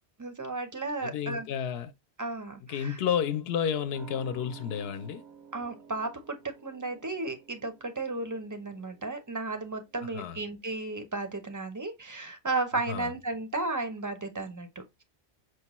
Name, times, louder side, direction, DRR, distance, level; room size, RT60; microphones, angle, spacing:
voice 1, 0.2-1.5 2.2-3.0 5.5-6.4 6.6-15.0, right 3 dB, 25° right, 0.5 m, -34 dB
voice 2, 1.0-1.9 2.6-5.2 10.0-10.4 12.9-13.1, left 8 dB, 70° left, 0.8 m, -31 dB
sound 1, 3.9-11.0 11.3-11.4, right 6 dB, 85° right, 1.5 m, -53 dB
6.2 x 2.2 x 2.9 m
omnidirectional pair, 1.1 m